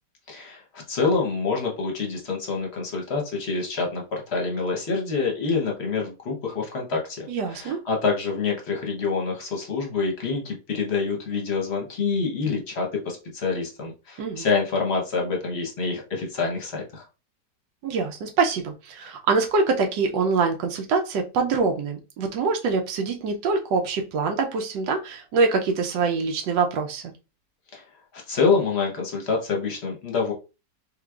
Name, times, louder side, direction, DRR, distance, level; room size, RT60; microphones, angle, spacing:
voice 1, 0.3-17.0 27.7-27.8 28.3-30.3, left 4 dB, 45° left, 0 dB, 1.0 m, -26 dB
voice 2, 7.3-7.8 14.2-14.5 17.8-27.1, right 4 dB, 85° right, 3 dB, 1.3 m, -24 dB
3.7 x 3.3 x 2.3 m, 0.30 s
omnidirectional pair, 1.9 m